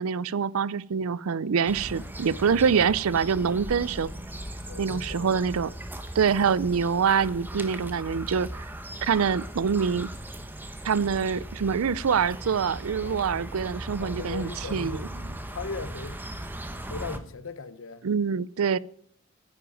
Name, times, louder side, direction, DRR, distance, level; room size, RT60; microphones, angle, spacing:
voice 1, 0.0-4.1 4.8-5.7 6.2-8.5 9.0-10.1 10.8-15.1 18.0-18.8, right 6 dB, 85° right, 0.5 m, -25 dB
sound 1, 1.7-17.2, right 1 dB, 10° right, 1.0 m, -38 dB
voice 2, 4.6-5.4 13.0-13.4 14.0-15.1 15.5-16.2 16.7-18.0, left 4 dB, 65° left, 0.9 m, -38 dB
9.9 x 8.7 x 9.0 m
head